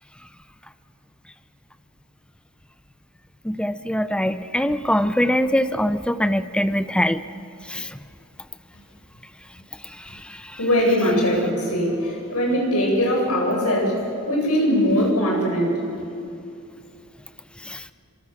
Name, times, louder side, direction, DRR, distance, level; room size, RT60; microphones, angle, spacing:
voice 1, 3.4-7.2 7.7-7.9 17.7-17.8, equal, 5° left, 12 dB, 0.7 m, -22 dB
voice 2, 10.6-14.0 14.2-15.8, equal, 90° left, 0 dB, 7.9 m, -21 dB
28.0 x 25.5 x 7.6 m, 2.7 s
head